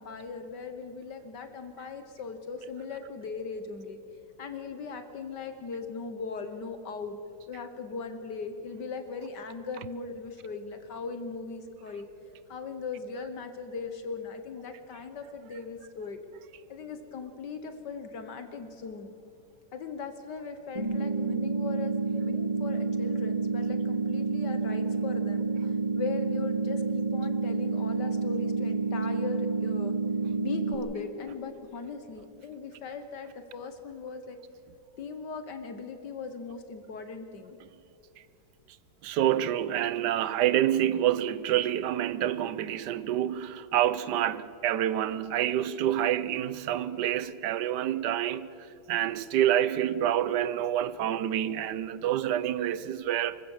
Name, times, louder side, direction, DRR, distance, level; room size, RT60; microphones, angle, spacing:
voice 1, 0.0-4.0 4.4-7.2 7.5-12.1 12.5-16.2 16.7-19.1 19.7-29.9 30.4-34.4 35.0-37.6, left 5 dB, 65° left, 1.7 m, -39 dB
sound 1, 20.7-30.7, right 4 dB, 20° right, 2.2 m, -29 dB
voice 2, 39.0-48.5 48.9-53.4, right 11 dB, 70° right, 1.2 m, -27 dB
25.0 x 15.5 x 7.2 m
omnidirectional pair, 2.1 m